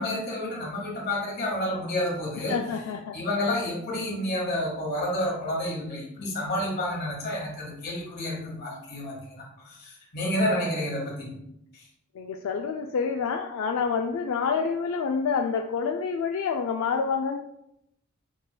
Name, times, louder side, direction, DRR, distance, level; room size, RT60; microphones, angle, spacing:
voice 1, 0.0-2.5 3.1-11.3 11.7-11.8, left 1 dB, 50° left, -2 dB, 1.6 m, -30 dB
voice 2, 2.5-3.1 3.5-3.6 10.5-10.7 12.1-17.4, left 5 dB, 80° left, 3 dB, 0.3 m, -28 dB
7.1 x 3.1 x 2.2 m, 0.81 s
head